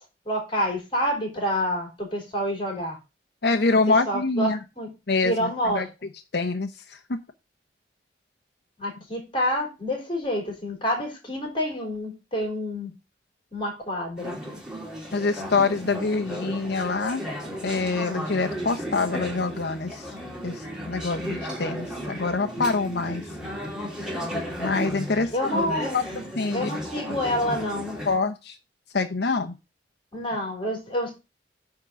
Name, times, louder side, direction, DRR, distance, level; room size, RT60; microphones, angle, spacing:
voice 1, 0.3-3.0 3.9-4.5 4.8-4.9 5.2-5.9 8.8-12.9 13.5-14.3 25.3-26.0 26.5-28.0 30.1-31.2, equal, 30° left, 2 dB, 3.8 m, -28 dB
voice 2, 3.4-4.6 5.1-5.9 6.3-7.2 15.1-17.2 17.6-20.1 20.4-23.3 24.6-25.6 25.9-26.7 28.1-28.6 28.9-29.5, left 3 dB, 65° left, 4 dB, 0.7 m, -25 dB
Conversation / Chatter, 14.2-28.2, equal, 5° right, 3.1 m, -34 dB
9.6 x 3.8 x 6.9 m, 0.26 s
head